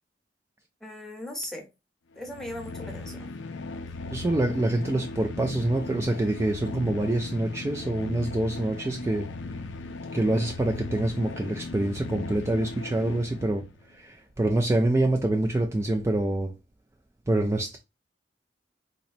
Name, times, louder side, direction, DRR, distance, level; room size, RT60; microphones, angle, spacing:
voice 1, 0.8-1.7 2.2-3.3, left 1 dB, 5° left, 1.0 m, -38 dB
sound 1, 2.1-13.8, left 3 dB, 85° left, 0.5 m, -38 dB
voice 2, 4.1-9.3 10.1-16.5 17.3-17.8, right 1 dB, 15° right, 0.3 m, -26 dB
3.9 x 3.0 x 2.5 m
head